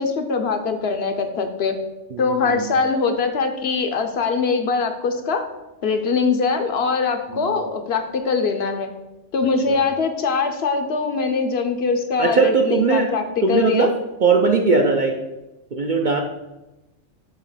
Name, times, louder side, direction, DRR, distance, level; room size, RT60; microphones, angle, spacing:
voice 1, 0.0-1.8 2.2-5.4 5.8-8.9 9.3-13.9, left 4 dB, 60° left, 6 dB, 0.8 m, -22 dB
voice 2, 2.1-2.7 7.3-7.5 9.7-9.8 12.2-13.1 13.4-13.9 14.2-15.1 15.7-16.2, right 4 dB, 55° right, 2 dB, 0.5 m, -19 dB
7.1 x 2.9 x 5.5 m, 0.98 s
omnidirectional pair, 1.3 m